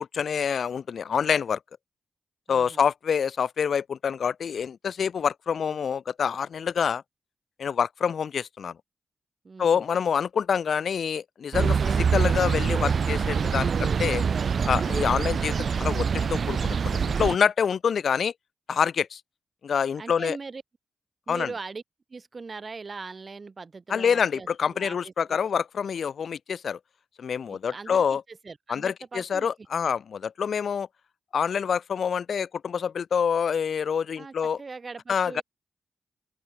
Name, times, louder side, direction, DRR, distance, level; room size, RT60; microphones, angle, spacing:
voice 1, 0.1-1.6 2.5-7.0 7.6-8.7 9.6-14.2 14.6-18.3 18.7-19.2 19.6-20.4 21.3-21.5 23.9-26.8 27.2-28.2 28.7-30.9 31.3-34.6 35.1-35.4, left 7 dB, 70° left, 0.7 m, -26 dB
voice 2, 2.5-2.8 9.4-9.9 20.0-20.6 21.3-21.8 22.1-25.4 27.5-29.5 29.8-29.9 34.2-35.4, right 4 dB, 45° right, 4.5 m, -40 dB
sound 1, 11.5-17.4, right 6 dB, 65° right, 0.6 m, -25 dB
open air
cardioid pair, 55°, 0 cm